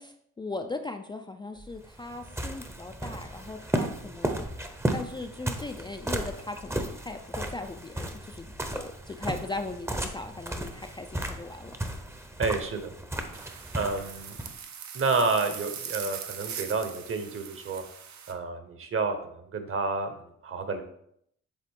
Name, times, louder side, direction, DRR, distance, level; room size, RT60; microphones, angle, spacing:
voice 1, 0.0-4.5 4.9-8.5 8.7-11.7, left 3 dB, 15° left, 5 dB, 0.4 m, -38 dB
sound 1, 1.6-14.6, right 1 dB, 10° right, 0.7 m, -35 dB
voice 2, 12.4-12.9 13.7-14.4 14.9-17.8 18.3-20.1 20.4-20.8, right 4 dB, 45° right, 7 dB, 1.1 m, -29 dB
sound 2, 13.3-18.3, right 7 dB, 65° right, 0.8 m, -41 dB
7.5 x 3.7 x 3.7 m, 0.70 s
cardioid pair, 90°, 30 cm